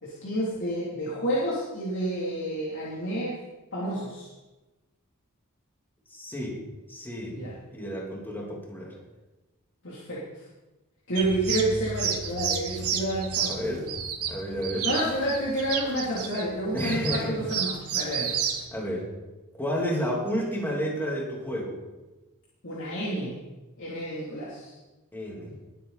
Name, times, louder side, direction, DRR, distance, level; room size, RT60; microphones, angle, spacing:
voice 1, 0.0-3.4 3.7-4.3 7.3-7.6 9.8-10.2 11.1-14.0 14.8-18.3 22.6-23.3 23.8-24.7, right 1 dB, 60° left, -7 dB, 3.2 m, -30 dB
voice 2, 6.1-6.6 6.9-7.4 7.7-8.9 13.5-13.9 14.3-14.9 16.7-17.4 18.7-19.1 19.6-21.8 25.1-25.6, equal, 10° left, -2 dB, 2.8 m, -31 dB
sound 1, 11.2-18.6, right 7 dB, 80° right, 1.6 m, -31 dB
21.0 x 8.3 x 4.2 m, 1.1 s
head